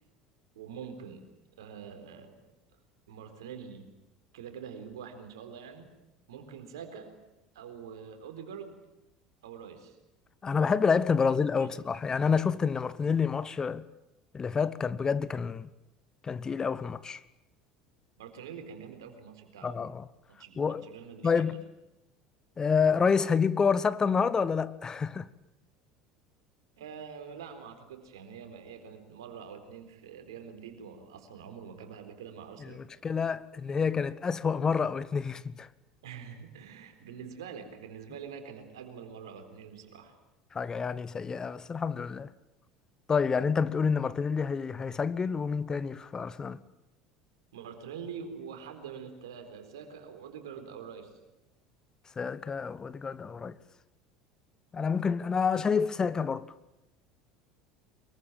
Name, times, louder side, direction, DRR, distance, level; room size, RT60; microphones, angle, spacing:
voice 1, 0.6-1.2 1.6-2.3 3.1-3.9 4.3-5.9 6.3-7.1 7.5-8.7 9.4-10.0 11.2-11.7 18.2-19.7 20.3-21.6 26.8-32.9 36.0-40.2 47.5-51.1, right 7 dB, 75° right, 4.0 m, -45 dB
voice 2, 10.4-13.8 14.3-15.7 16.2-17.2 19.6-20.1 20.6-20.8 21.2-21.6 22.6-25.3 32.8-35.7 40.5-42.3 43.1-46.6 52.2-53.6 54.7-56.5, left 5 dB, 25° left, 1.0 m, -28 dB
24.0 x 22.5 x 9.2 m
figure-of-eight pair, 70°, 3 cm